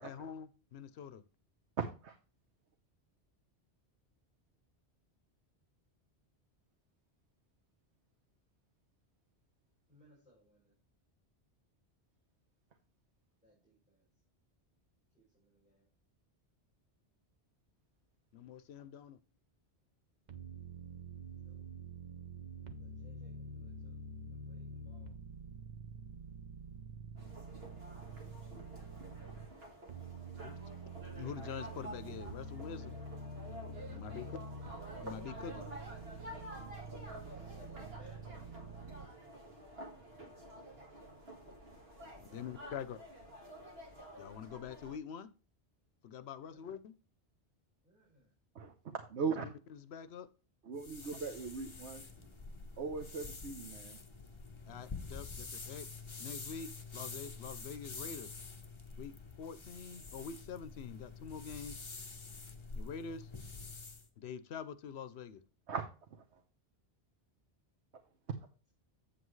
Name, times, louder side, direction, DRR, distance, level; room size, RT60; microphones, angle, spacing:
voice 1, 0.0-1.2 18.3-19.2 30.4-30.6 31.1-33.0 33.9-34.3 35.0-35.6 42.2-43.0 44.2-45.3 46.0-46.9 49.2-50.3 54.7-55.9 56.2-58.3 59.0-61.8 62.8-63.3 64.2-65.4, left 7 dB, 70° left, 0.9 m, -45 dB
voice 2, 1.8-2.1 48.5-48.7 49.1-49.5 50.7-52.0 52.8-54.0 65.7-65.8, right 5 dB, 90° right, 1.2 m, -38 dB
voice 3, 9.9-10.8 13.4-14.1 15.1-15.9 21.4-21.6 22.8-24.0 24.3-25.2 33.9-34.5 36.9-38.5 42.3-42.5 46.4-46.7 47.8-48.3 52.0-52.3, right 1 dB, 5° right, 5.0 m, -65 dB
sound 1, 20.3-29.5 29.9-39.1, right 3 dB, 45° right, 0.9 m, -47 dB
sound 2, 27.2-45.0, right 1 dB, 65° right, 2.0 m, -50 dB
sound 3, 50.8-64.1, left 4 dB, 30° left, 0.9 m, -47 dB
8.3 x 7.7 x 3.2 m
omnidirectional pair, 1.1 m